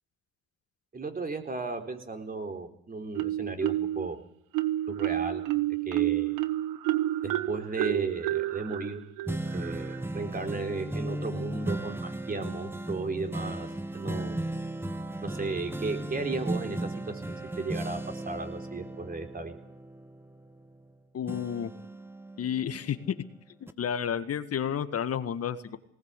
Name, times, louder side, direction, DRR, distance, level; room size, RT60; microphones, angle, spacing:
voice 1, 0.9-4.2 4.9-5.4 5.9-6.4 7.2-9.0 9.5-13.7 13.9-14.4 15.2-19.6, right 3 dB, 25° right, 6 dB, 4.0 m, -35 dB
Marimba xylophone, 3.2-4.1 4.5-10.0, right 15 dB, 75° right, 1.3 m, -30 dB
sound 1, 9.3-20.9 21.3-23.2 23.7-23.8, right 1 dB, 5° right, 1.5 m, -36 dB
voice 2, 21.1-21.7 22.4-23.2 23.6-25.8, left 8 dB, 45° left, 11 dB, 1.8 m, -31 dB
20.0 x 19.0 x 8.4 m, 0.71 s
supercardioid pair, 80°, 33 cm